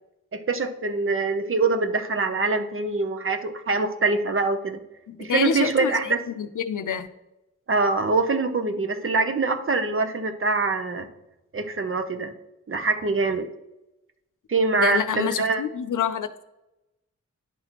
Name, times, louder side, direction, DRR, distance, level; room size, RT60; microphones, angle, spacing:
voice 1, 0.3-4.8 5.2-6.2 7.7-11.1 11.5-12.3 12.7-13.5 14.5-15.6, right 3 dB, 45° right, 0.7 m, -24 dB
voice 2, 5.1-5.9 6.4-7.1 14.8-16.4, left 8 dB, 85° left, 0.5 m, -27 dB
10.5 x 4.1 x 3.0 m
wide cardioid pair, 100°, 30 cm